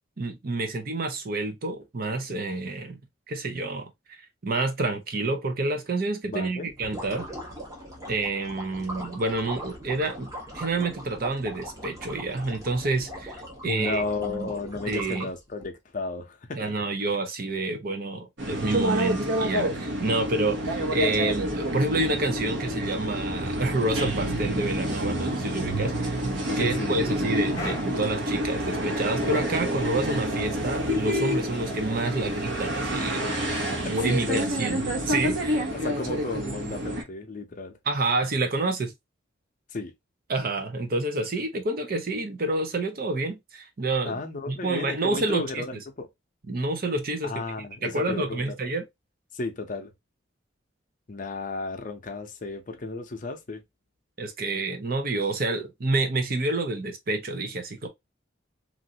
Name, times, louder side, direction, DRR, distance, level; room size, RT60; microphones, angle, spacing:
voice 1, 0.2-3.0 3.3-3.9 4.4-7.3 8.1-13.3 13.6-14.5 14.9-15.3 16.6-26.2 26.6-33.2 33.9-34.8 35.1-35.7 37.9-38.9 40.3-44.2 44.5-45.6 46.5-47.3 47.8-48.8 54.2-57.9, right 2 dB, 50° right, 0.6 m, -28 dB
voice 2, 6.2-6.7 13.6-16.7 26.6-27.1 32.1-32.3 33.5-34.4 35.7-37.8 39.7-39.9 44.0-46.1 47.2-48.4 49.3-49.9 51.1-53.6, left 3 dB, 45° left, 0.6 m, -33 dB
sound 1, 6.7-15.6, equal, 15° right, 1.1 m, -40 dB
sound 2, 18.4-37.0, equal, 70° right, 1.0 m, -28 dB
sound 3, 26.1-33.9, equal, 15° left, 1.0 m, -41 dB
3.0 x 2.6 x 2.7 m
head